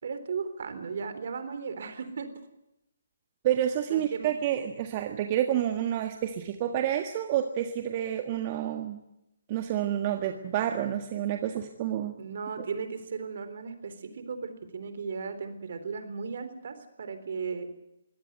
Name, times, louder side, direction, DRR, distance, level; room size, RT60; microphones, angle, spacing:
voice 1, 0.0-2.3 3.9-4.3 12.2-17.7, right 5 dB, 55° right, 10 dB, 3.8 m, -36 dB
voice 2, 3.4-9.0 9.5-12.2, right 11 dB, 35° right, 6 dB, 1.6 m, -29 dB
22.5 x 17.5 x 9.5 m, 0.89 s
figure-of-eight pair, 140°, 0 cm